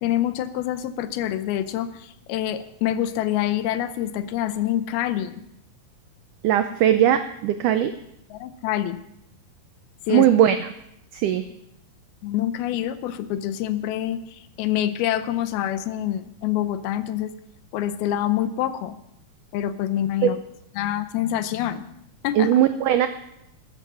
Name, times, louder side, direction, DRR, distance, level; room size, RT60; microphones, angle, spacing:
voice 1, 0.0-5.4 8.3-9.0 10.1-10.3 12.2-17.3 17.7-19.0 19.5-20.4 20.8-21.9 22.2-22.5, left 12 dB, 80° left, 12 dB, 2.7 m, -26 dB
voice 2, 6.4-7.9 10.1-10.6 11.1-11.4 20.2-20.3 22.3-23.1, right 11 dB, 85° right, 10 dB, 1.8 m, -19 dB
13.5 x 12.0 x 5.6 m, 0.79 s
omnidirectional pair, 4.4 m